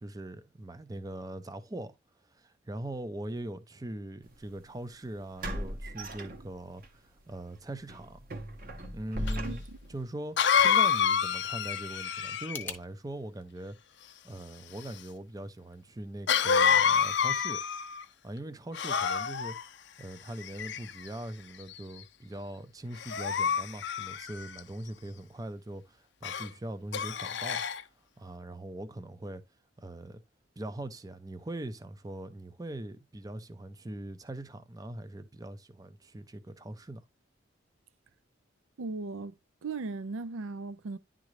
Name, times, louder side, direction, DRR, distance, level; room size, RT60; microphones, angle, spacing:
voice 1, 0.0-2.0 2.3-8.2 8.9-9.6 9.9-10.4 10.6-13.8 14.2-17.6 18.2-19.6 20.0-27.6 28.2-29.4 29.8-30.2 30.6-37.0, right 1 dB, 15° right, 0.5 m, -41 dB
sound 1, 4.3-4.4 5.4-6.9 7.3-7.4 7.9-10.0, equal, 45° right, 1.0 m, -38 dB
Cough, 9.3-9.4 10.4-12.7 16.3-18.0 18.7-19.6 20.4-21.1 21.7-22.0 23.0-24.6 26.2-26.5 26.9-27.8, left 7 dB, 55° left, 0.5 m, -28 dB
voice 2, 9.4-9.8 38.8-41.0, right 3 dB, 80° right, 0.5 m, -38 dB
sound 2, 12.4-12.8, left 4 dB, 10° left, 0.8 m, -47 dB
10.5 x 3.8 x 3.1 m
head